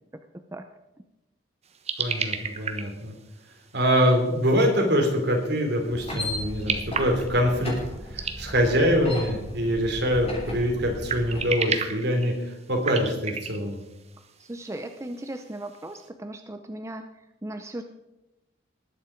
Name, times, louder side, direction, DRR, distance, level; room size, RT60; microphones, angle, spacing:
sound 1, 1.6-16.1, right 5 dB, 35° right, 1.2 m, -36 dB
voice 1, 2.0-3.1 3.7-7.7 8.1-13.8, equal, 60° right, 2 dB, 3.3 m, -24 dB
sound 2, 5.9-11.5, left 1 dB, 30° left, 3.2 m, -36 dB
voice 2, 14.4-17.1 17.4-17.8, right 1 dB, 15° right, 6 dB, 0.6 m, -37 dB
20.0 x 7.3 x 5.1 m, 0.96 s
head